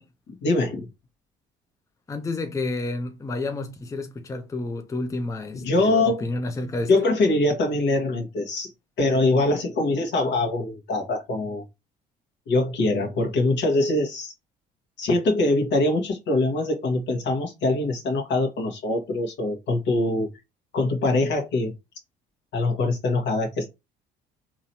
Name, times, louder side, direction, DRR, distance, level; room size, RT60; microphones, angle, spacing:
voice 1, 0.4-0.9 5.5-6.2 6.9-8.7 9.0-11.6 12.5-14.3 15.0-20.3 20.7-21.7 22.5-23.7, left 2 dB, 60° left, 1.4 m, -23 dB
voice 2, 2.1-6.9, left 2 dB, 15° left, 0.5 m, -30 dB
3.9 x 3.0 x 2.7 m
hypercardioid pair, 55°, 21 cm